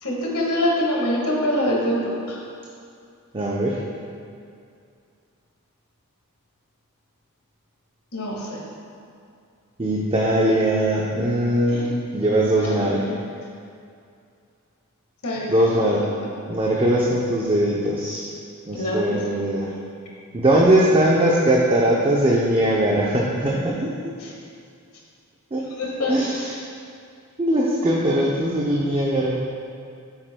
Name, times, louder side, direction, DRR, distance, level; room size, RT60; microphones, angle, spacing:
voice 1, 0.0-2.4 8.1-8.6 11.7-11.9 12.2-13.2 15.2-16.3 18.7-19.4 24.2-24.3 25.7-26.2, left 1 dB, 75° left, -3 dB, 1.6 m, -26 dB
voice 2, 3.3-3.8 9.8-13.0 15.5-16.0 16.5-18.3 18.7-19.7 20.3-23.9 25.5-25.6 26.1-26.5 27.4-29.4, right 1 dB, 25° right, -3 dB, 0.6 m, -20 dB
10.5 x 7.8 x 2.2 m, 2.4 s
head